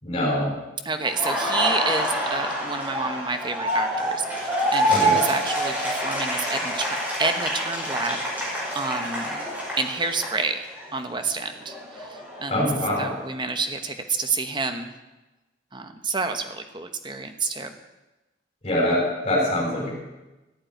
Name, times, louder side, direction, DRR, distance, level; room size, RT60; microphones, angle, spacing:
voice 1, 0.0-0.5 4.9-5.2 12.5-13.1 18.6-19.9, left 1 dB, 30° left, -5 dB, 6.1 m, -24 dB
voice 2, 0.8-8.5 8.7-9.5 9.8-10.7 10.9-12.6 13.0-14.9 15.7-17.7, right 4 dB, 25° right, 7 dB, 1.1 m, -29 dB
Laughter, 1.0-10.9 11.2-13.2, equal, 10° right, 5.5 m, -27 dB
14.5 x 8.7 x 9.2 m, 1.1 s
head